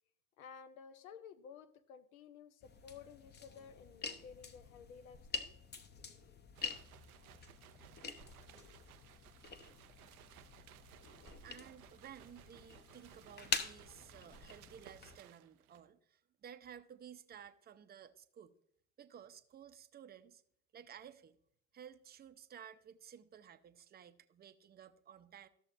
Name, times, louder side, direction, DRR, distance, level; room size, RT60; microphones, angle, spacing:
voice 1, 0.4-5.8, left 6 dB, 75° left, 0.8 m, -54 dB
sound 1, 2.6-15.2, left 5 dB, 25° left, 0.8 m, -46 dB
sound 2, 6.6-15.9, right 13 dB, 85° right, 0.5 m, -61 dB
voice 2, 11.4-18.6 19.0-20.4 20.7-21.4 21.7-25.5, right 9 dB, 20° right, 0.6 m, -55 dB
13.5 x 6.8 x 2.5 m
hypercardioid pair, 70°, 43 cm